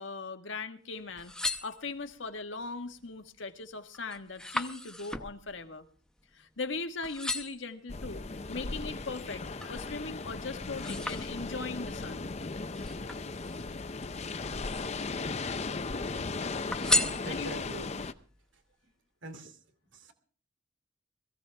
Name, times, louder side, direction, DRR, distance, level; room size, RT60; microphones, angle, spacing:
voice 1, 0.0-1.3 1.6-5.8 6.3-8.2 8.5-12.3 17.3-17.7, left 3 dB, 85° left, 7 dB, 1.5 m, -39 dB
sound 1, 1.0-2.3 2.9-3.3 3.6-6.7 7.0-7.7 8.3-9.8 10.2-11.8 12.7-13.8 14.4-15.2 15.5-16.2 16.7-17.8 18.3-18.4, left 1 dB, 5° left, 0.8 m, -35 dB
sound 2, 7.9-18.1, left 3 dB, 35° left, 0.7 m, -37 dB
voice 2, 16.9-17.9 19.2-19.6 19.9-20.1, right 1 dB, 80° right, 7 dB, 2.6 m, -44 dB
21.5 x 15.5 x 3.4 m, 0.40 s
head